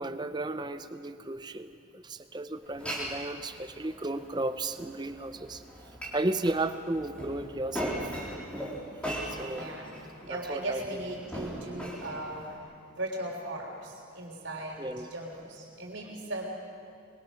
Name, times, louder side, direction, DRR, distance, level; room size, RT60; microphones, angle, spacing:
voice 1, 0.0-5.6 6.1-8.0 9.3-9.7 10.2-10.8 11.7-11.9 14.8-15.1, right 2 dB, 20° right, 11 dB, 0.7 m, -34 dB
Glass, 2.6-12.6, equal, 5° left, 3.6 m, -39 dB
voice 2, 9.4-16.5, right 1 dB, 55° right, -8 dB, 3.6 m, -38 dB
24.0 x 22.5 x 6.4 m, 2.3 s
head